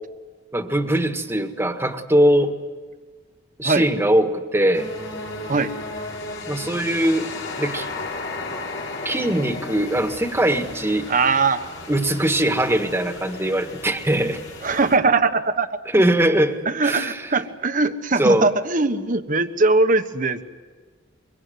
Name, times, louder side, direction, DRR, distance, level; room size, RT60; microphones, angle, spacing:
voice 1, 0.5-2.5 3.6-4.9 6.5-7.3 7.6-7.9 9.0-11.1 11.9-14.4 15.9-17.2 18.2-18.5, right 1 dB, 15° right, 7 dB, 1.7 m, -21 dB
sound 1, 4.7-15.0, left 3 dB, 75° left, 4.8 m, -34 dB
voice 2, 11.1-11.6 14.6-15.7 16.6-20.4, right 3 dB, 45° right, 9 dB, 1.3 m, -20 dB
24.5 x 23.0 x 9.5 m, 1.4 s
head